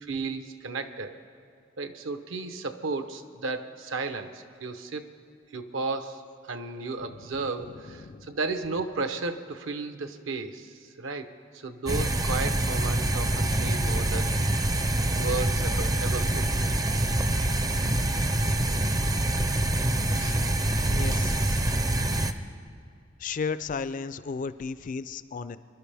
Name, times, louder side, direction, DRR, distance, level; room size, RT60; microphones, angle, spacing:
voice 1, 0.0-1.2 1.8-5.0 5.5-14.3 14.6-14.7 15.1-16.5, right 3 dB, 70° right, 9 dB, 0.8 m, -34 dB
voice 2, 7.1-8.3 20.1-20.4 20.9-21.7 23.2-25.6, left 5 dB, 40° left, 14 dB, 0.4 m, -35 dB
sound 1, 11.9-22.3, right 1 dB, 20° right, 0.5 m, -25 dB
25.0 x 11.5 x 3.4 m, 2.4 s
head